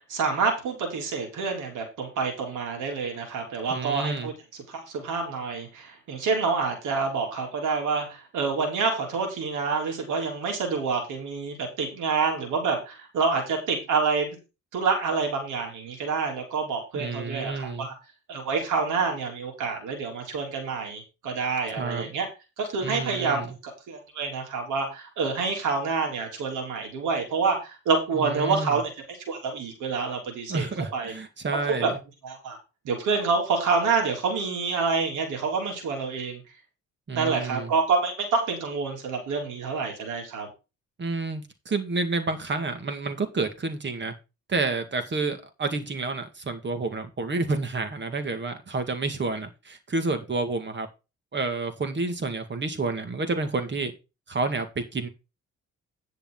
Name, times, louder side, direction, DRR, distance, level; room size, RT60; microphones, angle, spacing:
voice 1, 0.1-4.3 4.7-14.4 14.7-17.9 18.3-22.3 22.6-28.9 29.3-30.7 30.9-31.1 31.8-31.9 32.2-32.6 32.9-36.4 37.1-40.5, right 4 dB, 85° right, 3.5 m, -27 dB
voice 2, 3.7-4.3 16.9-17.9 21.8-22.1 22.8-23.6 28.1-28.8 30.5-32.0 37.1-37.7 41.0-44.1 44.5-50.9 51.3-53.9 54.3-55.1, right 3 dB, 35° right, 2.1 m, -29 dB
10.0 x 6.7 x 3.9 m
cardioid pair, 90°, 30 cm